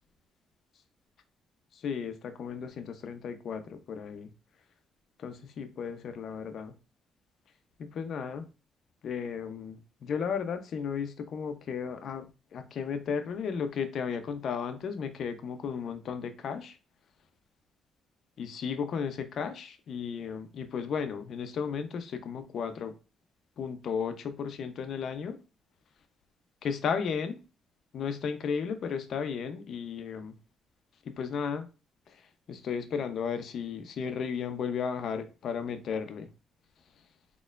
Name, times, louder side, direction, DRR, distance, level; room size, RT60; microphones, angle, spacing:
voice 1, 1.7-4.3 5.2-6.7 7.8-8.5 9.0-12.3 12.5-16.8 18.4-23.0 23.6-25.4 26.6-27.4 27.9-30.3 31.0-31.7 32.1-32.2 32.5-36.3, left 6 dB, 65° left, 8 dB, 0.6 m, -34 dB
4.2 x 3.0 x 2.4 m, 0.32 s
cardioid pair, 90°, 0 cm